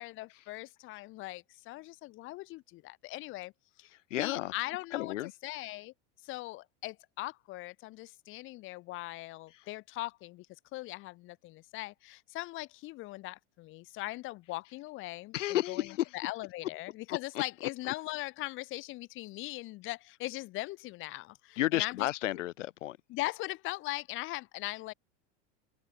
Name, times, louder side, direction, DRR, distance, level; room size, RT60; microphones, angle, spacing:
voice 1, 0.0-3.5 3.8-5.1 5.4-5.9 6.2-10.5 10.7-15.3 15.7-15.8 16.1-22.1 23.1-24.9, left 19 dB, 35° left, 4.1 m, -40 dB
voice 2, 4.1-4.5 4.9-5.3 9.6-9.7 15.3-16.1 17.1-17.2 17.9-18.0 21.6-23.0, left 15 dB, 80° left, 6.9 m, -32 dB
open air
supercardioid pair, 170°, 36 cm